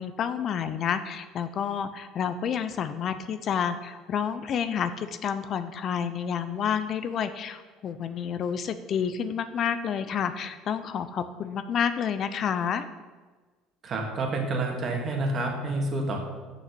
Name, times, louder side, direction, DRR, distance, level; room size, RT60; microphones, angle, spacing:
voice 1, 0.0-12.9, left 7 dB, 50° left, 11 dB, 0.5 m, -29 dB
voice 2, 13.8-16.2, right 2 dB, 45° right, 1 dB, 1.8 m, -28 dB
6.4 x 6.2 x 6.0 m, 1.3 s
supercardioid pair, 85°, 0 cm